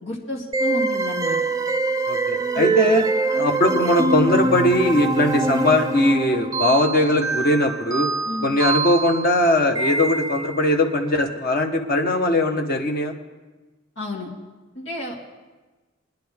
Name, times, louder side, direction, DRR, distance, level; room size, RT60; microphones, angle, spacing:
voice 1, 0.0-1.4 2.5-2.7 8.3-8.5 14.0-14.3 14.7-15.2, left 1 dB, 90° left, -4 dB, 2.4 m, -30 dB
sound 1, 0.5-10.7, right 3 dB, 20° right, 0.4 m, -24 dB
voice 2, 2.1-3.0 3.4-8.1 8.4-13.1, left 1 dB, 50° left, 4 dB, 1.2 m, -20 dB
22.5 x 10.5 x 3.6 m, 1.2 s
head